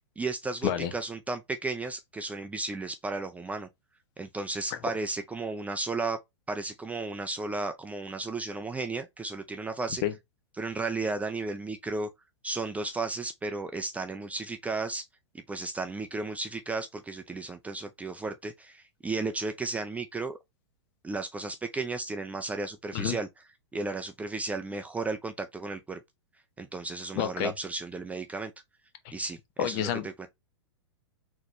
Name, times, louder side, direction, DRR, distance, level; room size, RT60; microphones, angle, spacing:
voice 1, 0.2-3.7 4.2-6.2 6.5-10.0 10.6-12.1 12.4-15.1 15.5-20.4 21.0-23.3 23.7-26.0 26.6-28.5 29.1-30.3, right 3 dB, 10° right, 0.4 m, -34 dB
voice 2, 27.2-27.5 29.0-29.1 29.6-30.3, left 10 dB, 45° left, 1.0 m, -29 dB
4.0 x 3.1 x 3.2 m
hypercardioid pair, 110°, 15 cm